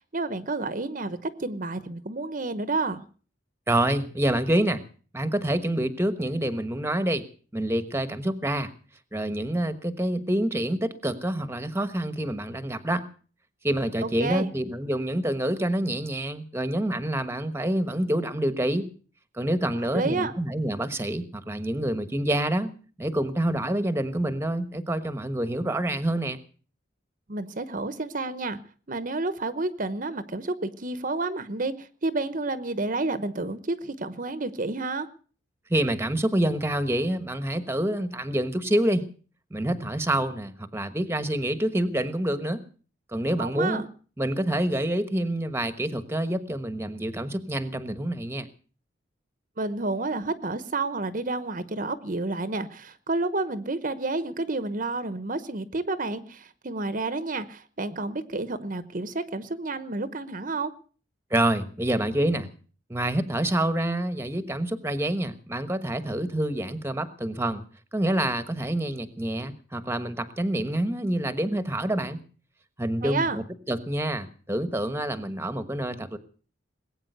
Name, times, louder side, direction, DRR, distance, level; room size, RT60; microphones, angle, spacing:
voice 1, 0.0-3.0 14.0-14.5 19.9-20.3 27.3-28.6 28.9-35.1 43.4-43.8 49.6-60.7 73.0-73.4, right 3 dB, 45° right, 13 dB, 1.0 m, -30 dB
voice 2, 3.7-4.8 5.1-7.2 7.5-8.7 9.1-13.0 13.6-18.9 19.3-22.7 23.0-26.4 35.7-39.0 39.5-42.6 43.1-43.8 44.2-48.5 61.3-62.5 62.9-67.6 67.9-72.2 72.8-76.2, right 1 dB, 15° right, 11 dB, 1.2 m, -27 dB
20.5 x 8.9 x 8.0 m, 0.42 s
head